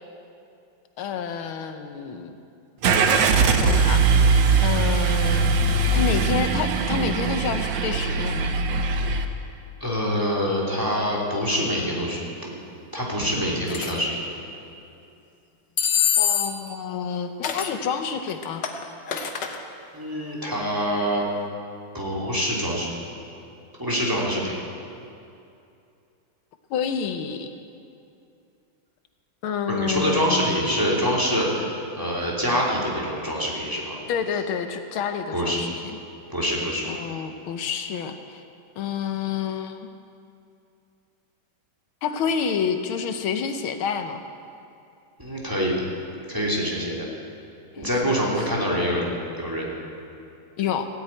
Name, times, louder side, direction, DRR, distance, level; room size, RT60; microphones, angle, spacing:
voice 1, 1.0-2.4 3.2-8.5 16.2-18.6 26.7-27.5 29.4-30.5 34.1-36.0 36.8-38.4 38.8-39.8 42.0-44.2 47.7-48.3 50.6-50.9, left 7 dB, 85° left, 7 dB, 1.7 m, -29 dB
Car / Engine starting, 2.8-9.2, right 4 dB, 65° right, 1.6 m, -21 dB
voice 2, 9.8-12.5 12.9-14.2 19.9-21.2 21.9-22.9 23.8-24.5 29.7-34.0 35.3-35.6 36.3-36.9 45.2-45.7 46.3-47.1 47.8-49.1 49.4-49.7, equal, 10° right, -4 dB, 3.0 m, -25 dB
sound 1, 13.7-13.9 15.8-16.7 17.4-17.8 18.3-19.6, left 9 dB, 60° left, 1.6 m, -24 dB
16.5 x 9.1 x 9.0 m, 2.6 s
omnidirectional pair, 2.2 m